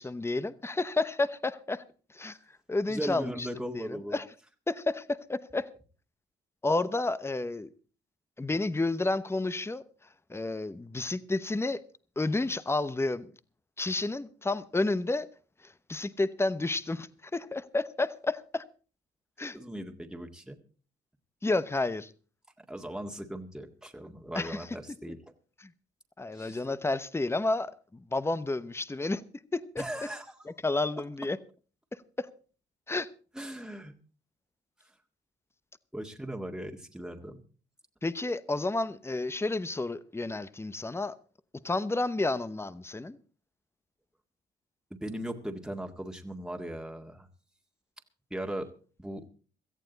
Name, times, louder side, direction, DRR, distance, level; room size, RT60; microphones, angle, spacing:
voice 1, 0.0-1.8 2.1-2.4 2.7-3.5 3.7-4.3 4.7-5.7 6.6-7.7 8.4-9.8 10.3-11.8 12.2-13.3 13.8-15.3 15.6-18.6 19.4-19.6 21.4-22.1 24.3-24.7 25.6-25.7 26.2-29.2 29.5-29.8 30.5-31.4 32.2-32.3 32.9-33.1 38.0-41.1 41.6-43.2, left 2 dB, 10° left, 0.9 m, -31 dB
voice 2, 2.9-4.2 19.5-20.6 22.6-25.2 26.3-26.6 29.8-30.3 33.3-33.9 35.9-37.4 44.9-47.3 48.3-48.7 49.0-49.3, right 1 dB, 5° right, 1.9 m, -38 dB
17.5 x 14.0 x 4.0 m
cardioid pair, 90°, 20 cm